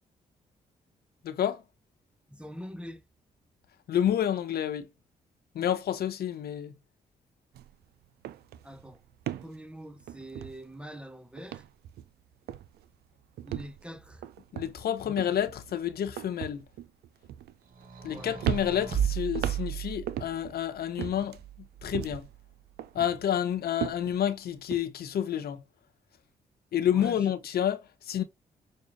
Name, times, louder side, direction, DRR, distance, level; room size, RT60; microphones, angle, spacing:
voice 1, 1.2-1.6 3.9-4.9 5.5-6.7 14.5-16.6 18.0-21.4 21.8-22.3 22.9-25.6 26.7-28.2, left 10 dB, 65° left, 0.7 m, -29 dB
voice 2, 2.3-3.0 8.6-9.0 9.4-11.6 13.4-14.2 18.1-18.4 26.9-27.2, equal, 5° right, 0.7 m, -44 dB
sound 1, 7.5-7.8 8.0-11.0 11.4-12.2 12.5-12.9 13.4-18.1 18.4-20.6 21.0-22.4 22.8-24.8, right 11 dB, 70° right, 0.4 m, -38 dB
sound 2, 17.7-20.5 21.3-22.3, right 9 dB, 55° right, 1.3 m, -34 dB
6.5 x 2.3 x 2.6 m
hypercardioid pair, 45°, 17 cm